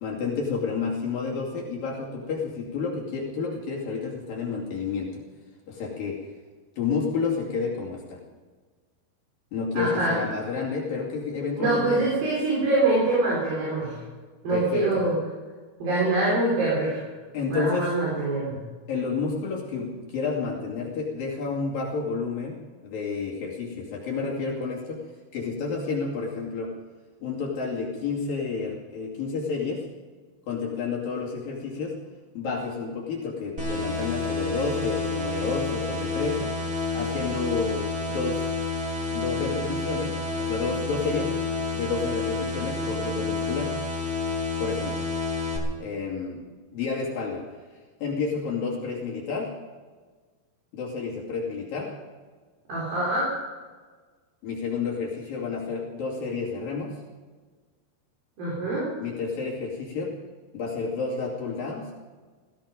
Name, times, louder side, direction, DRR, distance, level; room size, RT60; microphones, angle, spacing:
voice 1, 0.0-5.2 5.7-6.3 6.8-8.2 9.5-12.1 14.5-15.0 17.3-17.9 18.9-25.0 25.3-26.7 27.2-29.9 30.5-32.0 32.3-36.5 36.9-38.5 39.1-41.3 41.7-43.8 44.6-45.1 45.8-46.5 46.7-47.4 48.0-49.5 50.7-51.9 54.4-57.0 59.0-60.2 60.5-61.9, left 4 dB, 60° left, -3 dB, 4.1 m, -30 dB
voice 2, 9.7-10.1 11.6-14.0 14.4-15.2 15.8-17.1 17.5-18.6 52.7-53.3 58.4-58.9, right 2 dB, 60° right, -6 dB, 6.1 m, -24 dB
sound 1, 33.6-45.6, left 3 dB, 25° right, 3.5 m, -29 dB
17.5 x 15.5 x 5.2 m, 1.4 s
omnidirectional pair, 4.6 m